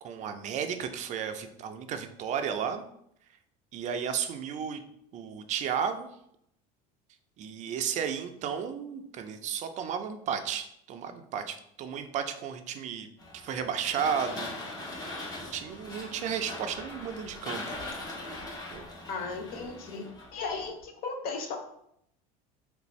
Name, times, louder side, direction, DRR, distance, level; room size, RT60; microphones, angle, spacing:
voice 1, 0.0-2.8 3.7-4.8 5.1-6.1 7.4-13.1 13.3-14.8 15.5-17.8 18.7-18.8, right 7 dB, 40° right, 8 dB, 0.4 m, -33 dB
sound 1, 13.2-20.8, left 2 dB, 20° left, 0.8 m, -41 dB
voice 2, 19.1-20.0 20.3-21.6, left 4 dB, 55° left, 4 dB, 0.6 m, -35 dB
3.2 x 2.6 x 3.1 m, 0.74 s
supercardioid pair, 125°, 19 cm